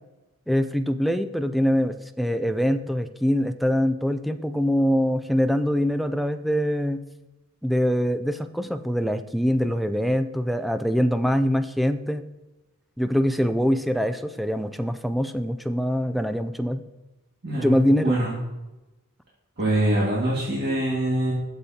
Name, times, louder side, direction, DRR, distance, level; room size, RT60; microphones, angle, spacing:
voice 1, 0.5-7.0 7.6-12.2 13.0-16.8 17.5-18.1, equal, ahead, 9 dB, 0.3 m, -24 dB
voice 2, 17.4-17.8 18.0-18.4 19.6-21.3, right 1 dB, 50° right, -6 dB, 1.9 m, -24 dB
11.5 x 7.2 x 2.8 m, 1.0 s
head